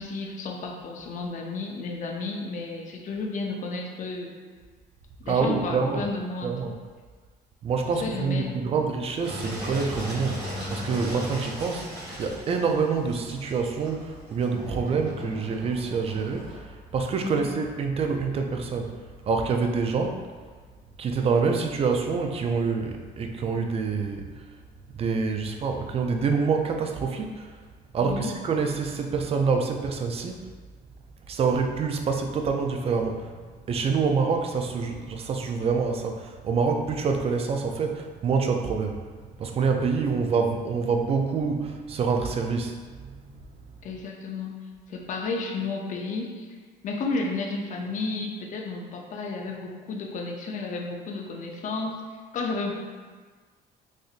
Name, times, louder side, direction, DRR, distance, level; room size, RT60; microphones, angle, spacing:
voice 1, 0.0-4.4 5.2-6.5 7.9-8.6 17.2-17.5 28.0-28.3 43.8-44.6 44.9-46.5 46.8-52.0 52.3-52.7, left 3 dB, 50° left, 1 dB, 0.6 m, -32 dB
voice 2, 5.3-6.1 6.4-6.7 7.6-11.9 12.2-18.9 19.3-20.2 21.0-24.3 24.9-27.5 27.9-30.5 31.3-33.3 33.7-39.0 39.4-42.8 43.3-43.4, right 5 dB, 35° right, 4 dB, 0.4 m, -26 dB
Engine, 9.2-16.6, left 1 dB, 75° right, 1.3 m, -37 dB
4.2 x 2.6 x 2.4 m, 1.5 s
cardioid pair, 110°, 17 cm